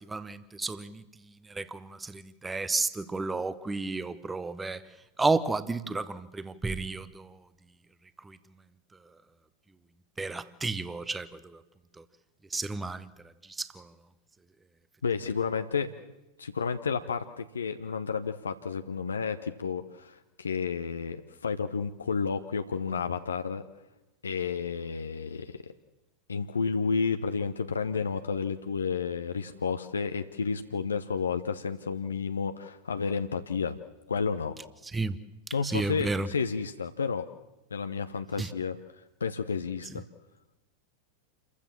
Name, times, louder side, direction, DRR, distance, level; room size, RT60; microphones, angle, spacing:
voice 1, 0.1-1.0 1.6-4.8 5.2-7.3 10.2-11.3 12.5-13.1 13.6-13.8 34.9-35.2 35.7-36.3 38.4-38.5, right 3 dB, 10° right, 0.9 m, -31 dB
voice 2, 15.0-15.9 16.4-23.6 24.2-25.6 26.3-33.8 34.1-34.6 35.5-37.2 37.7-38.8 39.2-40.0, left 5 dB, 70° left, 0.8 m, -31 dB
28.0 x 15.0 x 7.4 m
figure-of-eight pair, 90°, 0 cm